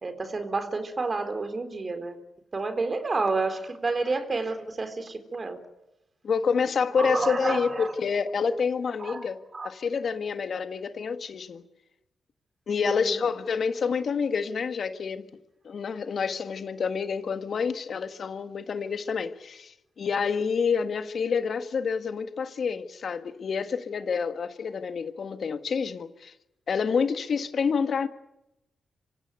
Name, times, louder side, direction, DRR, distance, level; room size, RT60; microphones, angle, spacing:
voice 1, 0.0-2.2 2.5-5.6 7.0-7.9 9.0-9.2 9.5-9.7 12.9-13.2, right 3 dB, 45° right, 4.1 m, -30 dB
voice 2, 6.2-9.4 9.6-11.6 12.7-15.2 15.6-26.3 26.7-28.1, left 6 dB, 65° left, 1.5 m, -28 dB
26.0 x 16.5 x 9.3 m
hypercardioid pair, 40°, 0 cm